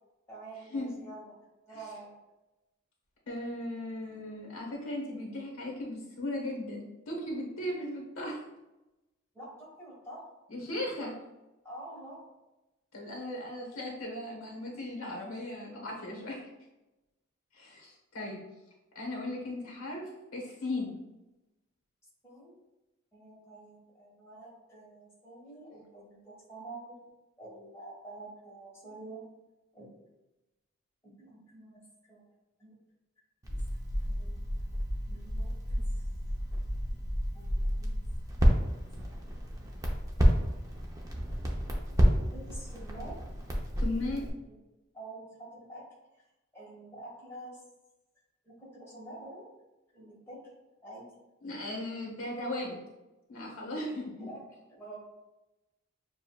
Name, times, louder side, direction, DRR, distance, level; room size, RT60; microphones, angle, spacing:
voice 1, 0.3-1.4 1.7-2.2 9.3-10.3 11.6-12.3 22.2-22.5 23.1-26.9 27.4-29.2 29.7-30.1 31.0-32.3 32.6-32.8 33.7-34.4 35.1-36.1 37.3-37.9 38.3-38.6 39.0-39.4 41.9-43.2 44.5-44.6 44.9-45.8 46.2-46.3 46.5-47.6 48.4-49.5 49.9-50.4 50.8-51.1 53.7-53.8 54.2-54.4 54.7-55.0, right 2 dB, 10° left, -6 dB, 1.3 m, -48 dB
voice 2, 3.3-8.4 10.5-11.2 12.9-16.5 17.5-18.4 18.9-20.9 43.8-44.2 51.4-52.8 53.3-54.3, left 1 dB, 80° left, -1 dB, 1.2 m, -37 dB
Crackle, 33.4-44.3, equal, 15° right, 0.6 m, -30 dB
6.9 x 2.5 x 2.4 m, 1.0 s
head